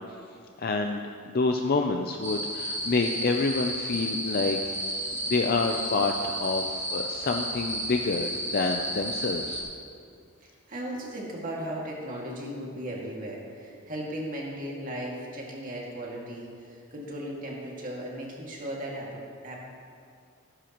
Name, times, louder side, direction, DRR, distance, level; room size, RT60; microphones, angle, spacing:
voice 1, 0.6-1.0 1.3-4.7 5.1-9.6, left 3 dB, 45° left, 4 dB, 0.5 m, -28 dB
sound 1, 2.2-9.6, equal, 15° right, 2.7 m, -32 dB
voice 2, 10.4-19.6, right 1 dB, 40° right, -3 dB, 2.1 m, -37 dB
15.0 x 12.5 x 3.0 m, 2.3 s
head